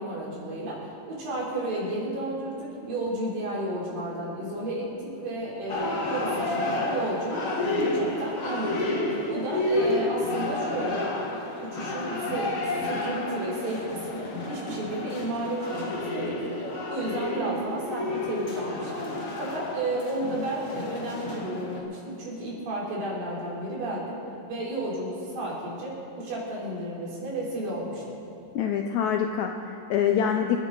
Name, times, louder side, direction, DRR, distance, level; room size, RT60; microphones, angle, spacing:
voice 1, 0.0-7.5 7.8-8.9 9.3-19.1 19.4-24.2 24.5-28.0, right 1 dB, 85° right, -5 dB, 5.1 m, -32 dB
sound 1, 5.7-21.8, left 2 dB, 55° left, 0.9 m, -30 dB
voice 2, 28.5-30.6, left 8 dB, 80° left, 4 dB, 1.7 m, -25 dB
27.0 x 9.8 x 3.9 m, 2.8 s
omnidirectional pair, 4.0 m